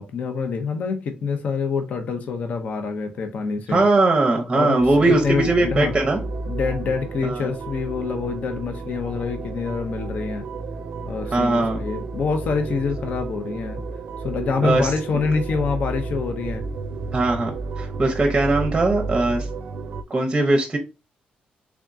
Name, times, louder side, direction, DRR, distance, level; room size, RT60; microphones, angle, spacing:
voice 1, 0.0-3.8 4.5-6.0 6.5-10.4 11.1-13.8 14.2-16.6, left 5 dB, 60° left, 0.6 m, -26 dB
voice 2, 3.7-6.2 7.2-7.5 11.3-11.8 14.6-14.9 17.1-17.5 17.8-19.5 20.1-20.8, right 2 dB, 20° right, 0.7 m, -20 dB
sound 1, 4.8-20.0, right 3 dB, 55° right, 0.4 m, -32 dB
3.5 x 3.5 x 2.6 m
cardioid pair, 135°, 3 cm